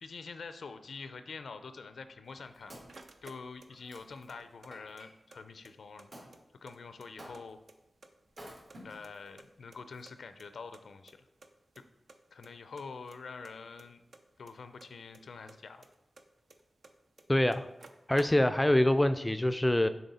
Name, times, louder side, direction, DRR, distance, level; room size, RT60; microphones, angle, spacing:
voice 1, 0.0-2.8 3.2-6.1 6.5-7.6 8.8-11.2 11.8-11.9 12.3-14.0 14.4-15.9, left 4 dB, 85° left, 10 dB, 0.4 m, -46 dB
Wood, 2.1-5.1 6.1-6.3 7.2-7.7 8.3-9.3 9.9-10.0, equal, 55° right, 2.1 m, -52 dB
sound 1, 2.3-4.0 4.3-5.4 5.6-5.7 6.0-7.4 7.7-8.4 8.7-10.1 10.4-10.5 10.7-10.8 11.1-11.2 11.4-11.8 12.1-12.5 12.8-15.2 15.5-16.9 17.2-17.3 17.5-18.7, right 3 dB, 70° right, 0.6 m, -54 dB
voice 2, 17.3-17.7 18.1-19.9, left 1 dB, 15° left, 11 dB, 0.3 m, -25 dB
6.6 x 4.1 x 4.1 m, 0.93 s
cardioid pair, 50°, 0 cm